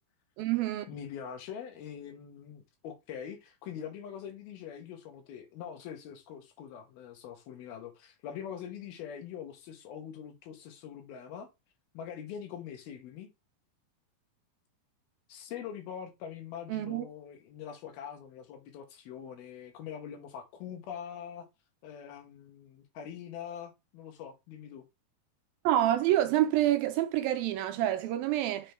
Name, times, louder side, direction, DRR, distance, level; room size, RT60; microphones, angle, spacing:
voice 1, 0.4-0.9 16.7-17.1 25.6-28.7, right 13 dB, 80° right, 2.3 m, -27 dB
voice 2, 0.9-11.5 11.9-13.3 15.3-21.5 21.8-24.8, left 8 dB, 75° left, 3.1 m, -43 dB
7.0 x 3.7 x 4.6 m
omnidirectional pair, 4.5 m